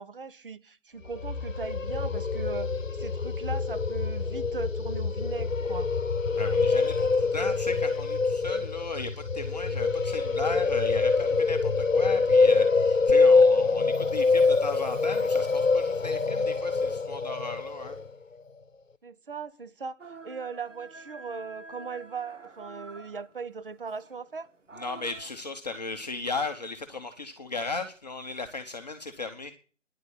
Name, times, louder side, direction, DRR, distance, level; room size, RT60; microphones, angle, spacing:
voice 1, 0.0-5.9 19.0-20.0 20.2-24.5, right 5 dB, 45° right, 0.9 m, -39 dB
sound 1, 1.1-18.1, left 4 dB, 90° left, 0.8 m, -25 dB
voice 2, 6.3-18.0 24.8-29.5, left 3 dB, 35° left, 0.8 m, -36 dB
Chime, 13.7-17.3 17.6-17.7, left 5 dB, 10° left, 3.9 m, -61 dB
sound 2, 20.0-25.3, right 3 dB, 75° right, 1.4 m, -48 dB
10.5 x 7.9 x 8.5 m
figure-of-eight pair, 150°, 38 cm